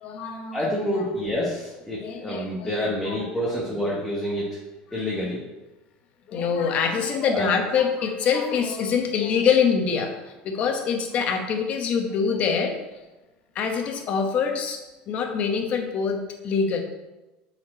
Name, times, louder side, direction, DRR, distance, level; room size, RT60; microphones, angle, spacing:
voice 1, 0.0-1.0 2.0-2.7 3.5-3.6 6.3-12.8 13.5-14.8 15.1-16.8, left 6 dB, 40° left, 4 dB, 1.0 m, -25 dB
voice 2, 0.5-4.6 4.9-5.4 7.3-7.4, left 1 dB, 5° left, -6 dB, 1.2 m, -28 dB
7.2 x 4.4 x 4.3 m, 1.1 s
cardioid pair, 150°, 3 cm